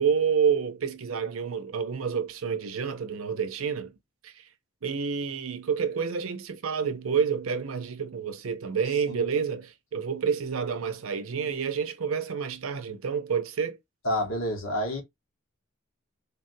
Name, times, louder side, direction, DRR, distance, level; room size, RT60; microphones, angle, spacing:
voice 1, 0.0-3.9 4.2-4.4 4.8-13.8, right 6 dB, 85° right, 0.6 m, -29 dB
voice 2, 14.0-15.0, equal, 80° left, 1.2 m, -29 dB
3.4 x 2.3 x 2.6 m
head